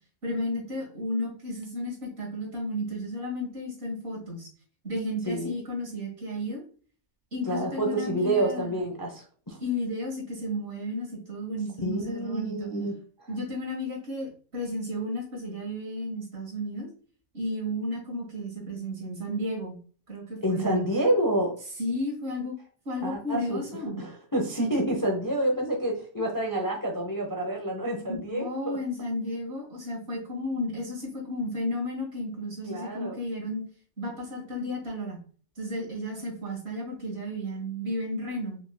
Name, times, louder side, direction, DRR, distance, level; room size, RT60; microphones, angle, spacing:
voice 1, 0.2-4.5 4.8-6.6 7.3-8.8 9.6-12.7 13.3-16.9 17.3-19.8 20.1-20.8 21.8-22.6 22.9-24.1 28.3-33.6 34.0-35.2 35.6-38.6, left 1 dB, 45° right, -2 dB, 1.9 m, -33 dB
voice 2, 5.3-5.6 7.4-9.6 11.8-13.3 20.4-21.5 23.0-23.6 24.0-28.8 32.6-33.1, right 1 dB, 20° left, 0 dB, 0.6 m, -28 dB
5.1 x 3.4 x 2.2 m, 0.43 s
omnidirectional pair, 1.6 m